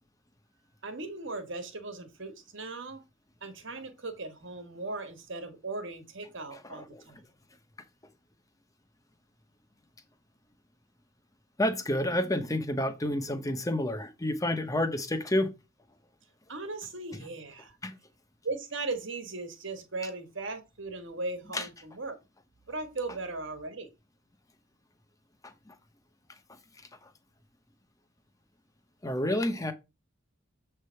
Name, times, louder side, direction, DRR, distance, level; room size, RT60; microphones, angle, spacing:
voice 1, 0.8-3.0 3.4-7.2 16.5-17.8 18.4-22.2 22.7-23.9, right 3 dB, 65° right, 1.4 m, -38 dB
voice 2, 6.7-7.0 11.6-15.5 17.8-17.9 21.5-21.7 25.4-25.7 29.0-29.7, left 1 dB, 15° left, 0.8 m, -29 dB
7.4 x 3.4 x 5.6 m
head